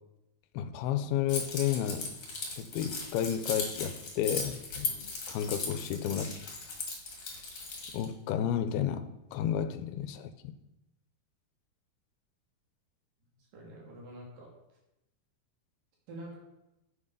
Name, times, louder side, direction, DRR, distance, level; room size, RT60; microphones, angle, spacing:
voice 1, 0.5-2.1 2.5-4.9 5.3-6.4 7.9-10.5, left 10 dB, 80° left, 11 dB, 2.5 m, -32 dB
Keys jangling, 1.3-8.0, left 3 dB, 40° left, 2.1 m, -37 dB
voice 2, 13.3-14.5 16.1-16.4, right 1 dB, 60° right, -2 dB, 4.1 m, -47 dB
8.7 x 7.8 x 5.5 m, 0.91 s
omnidirectional pair, 4.6 m